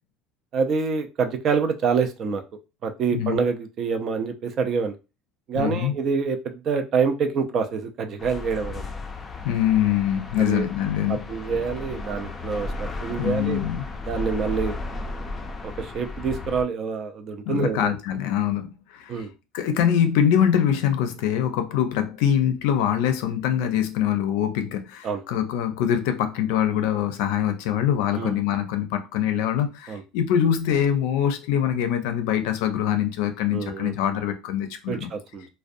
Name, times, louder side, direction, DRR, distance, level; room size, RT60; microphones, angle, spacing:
voice 1, 0.5-2.4 2.8-4.9 5.5-8.9 10.4-10.6 11.1-13.6 14.0-14.8 15.6-18.0 19.1-19.3 25.0-25.2 28.1-28.4 29.9-30.0 33.5-33.9 34.9-35.5, right 5 dB, 40° right, 0.4 m, -26 dB
voice 2, 5.5-5.9 9.4-11.3 13.2-13.8 17.5-19.1 19.5-35.1, left 9 dB, 80° left, 0.4 m, -24 dB
sound 1, 8.2-16.6, left 3 dB, 20° left, 0.4 m, -34 dB
2.5 x 2.1 x 2.5 m
cardioid pair, 130°, 0 cm